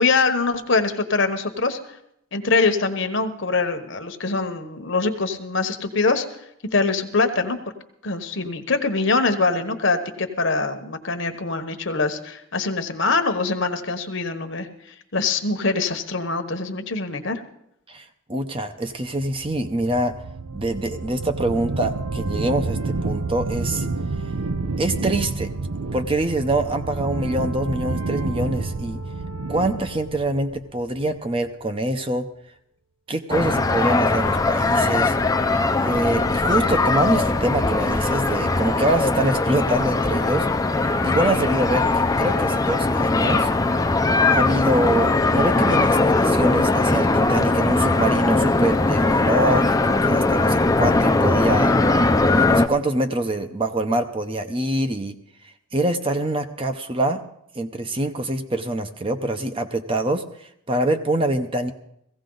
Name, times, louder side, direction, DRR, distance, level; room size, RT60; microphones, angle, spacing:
voice 1, 0.0-1.8 2.3-6.2 6.7-7.6 8.0-14.7 15.1-17.4, left 3 dB, 55° left, 8 dB, 1.1 m, -23 dB
voice 2, 17.9-20.2 20.5-23.9 24.8-25.5 25.9-29.0 29.5-32.3 33.1-35.2 35.8-40.5 41.0-43.5 44.3-51.7 52.3-55.2 55.4-57.2 57.5-61.7, right 1 dB, 25° right, 7 dB, 0.7 m, -25 dB
sound 1, 19.2-31.3, right 3 dB, 90° right, 0.7 m, -29 dB
sound 2, 33.3-52.7, left 3 dB, 15° left, 0.5 m, -20 dB
16.5 x 16.0 x 3.9 m, 0.77 s
head